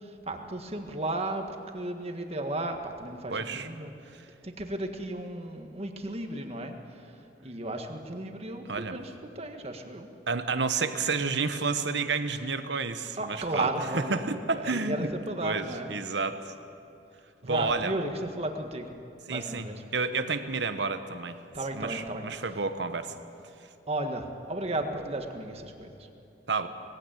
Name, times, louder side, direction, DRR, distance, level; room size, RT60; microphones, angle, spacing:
voice 1, 0.3-1.5 1.7-3.9 4.4-6.8 7.4-9.1 9.4-10.1 13.2-14.2 14.6-15.9 17.4-18.1 18.4-18.9 19.3-19.8 21.5-22.2 23.9-25.9, right 2 dB, 35° right, 5 dB, 1.7 m, -34 dB
voice 2, 3.3-3.7 8.6-9.0 10.3-15.1 15.4-16.5 17.4-17.9 19.3-21.4 21.7-23.1 26.5-26.7, right 4 dB, 70° right, 9 dB, 1.1 m, -30 dB
20.0 x 16.0 x 9.1 m, 2.7 s
head